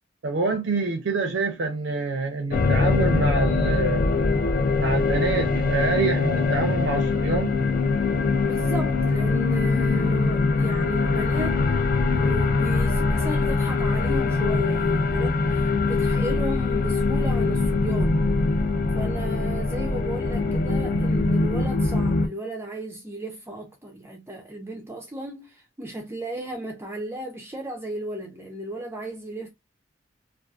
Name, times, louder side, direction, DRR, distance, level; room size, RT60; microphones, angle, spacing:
voice 1, 0.2-4.0 4.7-7.5, right 3 dB, 80° right, 0.5 m, -26 dB
sound 1, 2.5-22.3, left 3 dB, 50° left, 0.4 m, -23 dB
voice 2, 8.4-11.6 12.0-18.2 18.9-29.5, right 2 dB, 15° right, 0.4 m, -35 dB
2.5 x 2.3 x 2.3 m
head